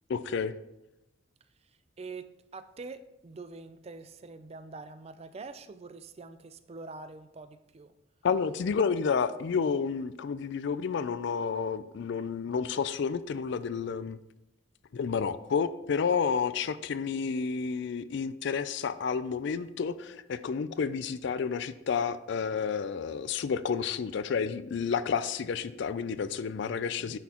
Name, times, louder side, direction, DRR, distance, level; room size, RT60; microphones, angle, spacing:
voice 1, 0.1-0.5 8.2-14.2 14.9-27.2, left 6 dB, 60° left, 0.4 m, -30 dB
voice 2, 2.0-7.9 27.0-27.2, right 3 dB, 30° right, 0.4 m, -45 dB
9.7 x 6.1 x 2.9 m
head